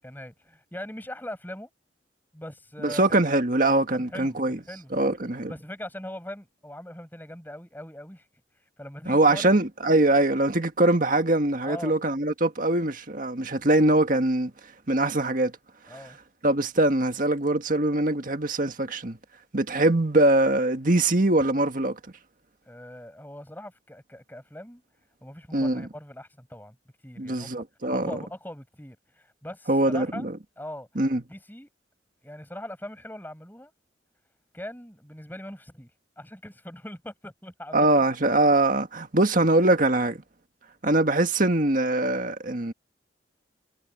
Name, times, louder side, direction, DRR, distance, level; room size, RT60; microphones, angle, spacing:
voice 1, 0.0-1.7 2.3-3.0 3.9-5.1 5.5-8.3 8.8-9.6 11.6-12.0 15.9-16.2 22.7-24.8 25.2-26.8 27.0-27.6 27.9-30.3 30.6-30.9 31.3-31.7 32.2-33.7 34.5-35.9 36.2-38.0, left 1 dB, 10° left, 6.0 m, -41 dB
voice 2, 2.8-4.6 4.9-5.5 9.0-14.5 14.9-15.5 16.4-19.2 19.5-22.0 25.5-25.8 27.2-28.2 29.7-30.3 30.9-31.2 37.7-40.2 40.8-42.7, right 2 dB, 45° right, 1.8 m, -22 dB
head